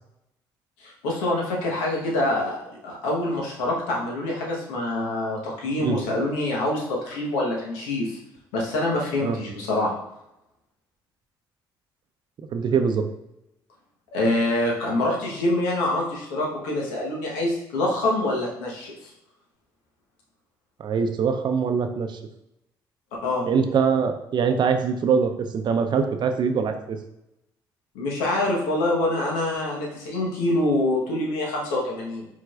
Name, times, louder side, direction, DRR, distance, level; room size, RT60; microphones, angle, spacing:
voice 1, 0.8-2.6 2.8-8.2 8.5-9.9 14.1-19.1 23.2-23.5 27.9-32.3, left 1 dB, 85° left, -2 dB, 1.1 m, -25 dB
voice 2, 12.4-13.0 20.8-22.2 23.4-27.0, right 6 dB, 55° right, 6 dB, 0.6 m, -23 dB
4.8 x 3.8 x 2.4 m, 0.85 s
supercardioid pair, 60°, 9 cm